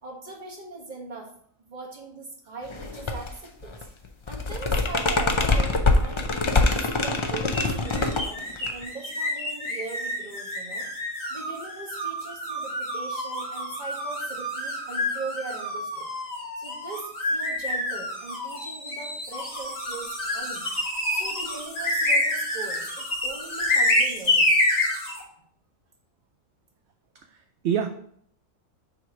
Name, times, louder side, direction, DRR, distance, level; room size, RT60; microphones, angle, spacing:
voice 1, 0.0-1.3 1.7-3.9 4.2-6.4 6.8-10.9 11.3-16.1 16.6-20.6 21.1-24.6, right 3 dB, 35° right, -1 dB, 1.5 m, -40 dB
sound 1, 2.7-3.3 3.6-8.8, left 3 dB, 50° left, 0.3 m, -24 dB
sound 2, 7.5-25.2, left 1 dB, 80° left, 2.4 m, -28 dB
voice 2, 27.1-27.9, right 8 dB, 65° right, 7 dB, 0.8 m, -28 dB
6.9 x 3.1 x 6.0 m, 0.65 s
omnidirectional pair, 1.4 m